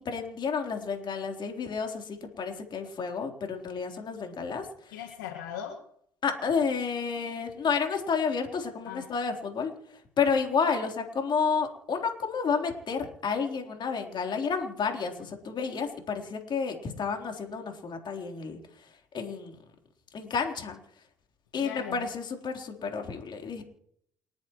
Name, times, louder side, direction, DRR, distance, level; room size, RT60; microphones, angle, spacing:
voice 1, 0.1-5.0 6.2-18.9 19.1-19.6 20.1-20.8 21.5-23.6, left 5 dB, 50° left, 3 dB, 3.8 m, -31 dB
voice 2, 4.9-5.8 8.9-9.0 21.6-22.0, left 9 dB, 90° left, 2 dB, 1.7 m, -38 dB
29.5 x 10.5 x 3.1 m, 0.68 s
hypercardioid pair, 60°, 10 cm